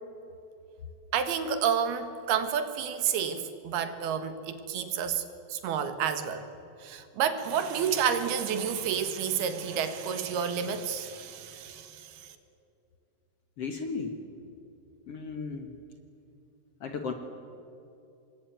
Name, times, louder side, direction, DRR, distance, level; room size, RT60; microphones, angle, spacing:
voice 1, 1.1-5.2 5.5-6.5 6.8-12.3, right 7 dB, 85° right, 9 dB, 3.5 m, -30 dB
voice 2, 13.6-14.2 15.1-15.7 16.8-17.1, left 5 dB, 55° left, 6 dB, 1.9 m, -35 dB
26.5 x 21.5 x 9.2 m, 2.7 s
omnidirectional pair, 4.4 m